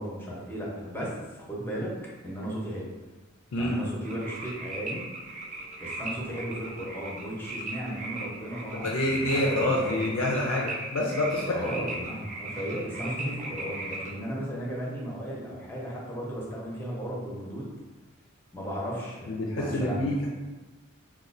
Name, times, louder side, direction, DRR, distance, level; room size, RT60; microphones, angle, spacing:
voice 1, 0.0-1.9 2.2-2.9 3.6-5.1 5.8-10.2 11.5-17.7 18.5-20.1, equal, 10° left, -4 dB, 0.7 m, -35 dB
sound 1, 4.0-14.1, right 2 dB, 35° right, 0.4 m, -38 dB
voice 2, 8.7-11.6 19.3-20.3, left 1 dB, 85° left, -2 dB, 0.4 m, -27 dB
4.2 x 2.2 x 2.5 m, 1.2 s
head